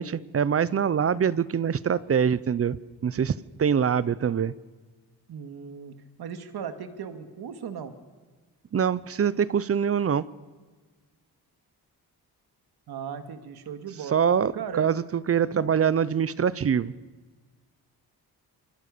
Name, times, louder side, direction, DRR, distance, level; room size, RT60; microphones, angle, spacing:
voice 1, 0.0-4.5 8.7-10.3 14.1-16.9, right 7 dB, 35° right, 19 dB, 0.7 m, -24 dB
voice 2, 5.3-7.9 12.9-14.2 14.5-14.9 15.5-15.7, right 7 dB, 75° right, 9 dB, 2.3 m, -37 dB
28.5 x 25.5 x 6.8 m, 1.3 s
wide cardioid pair, 155°, 38 cm